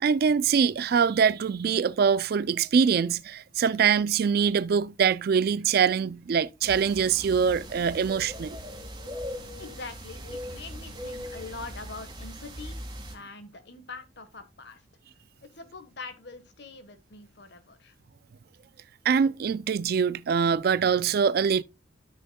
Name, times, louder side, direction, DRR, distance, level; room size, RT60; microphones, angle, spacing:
voice 1, 0.0-8.6 19.1-21.6, right 6 dB, 50° right, 0.3 m, -24 dB
sound 1, 6.6-13.2, equal, 20° right, 2.0 m, -40 dB
voice 2, 9.6-12.8 13.1-14.8 15.4-18.0, left 4 dB, 60° left, 1.3 m, -43 dB
12.5 x 6.3 x 2.2 m
head